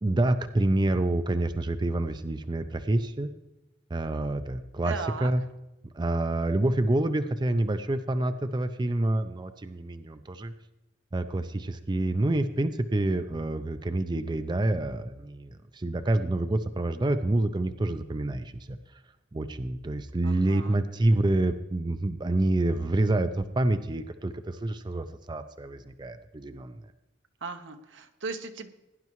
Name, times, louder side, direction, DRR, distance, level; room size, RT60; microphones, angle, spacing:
voice 1, 0.0-3.3 3.9-5.0 5.2-5.4 5.9-10.5 11.1-18.8 19.3-26.8, right 1 dB, 25° right, 9 dB, 0.5 m, -27 dB
voice 2, 4.8-5.3 20.2-20.8 27.4-28.7, right 4 dB, 85° right, 7 dB, 1.1 m, -37 dB
17.5 x 10.5 x 3.1 m, 0.99 s
head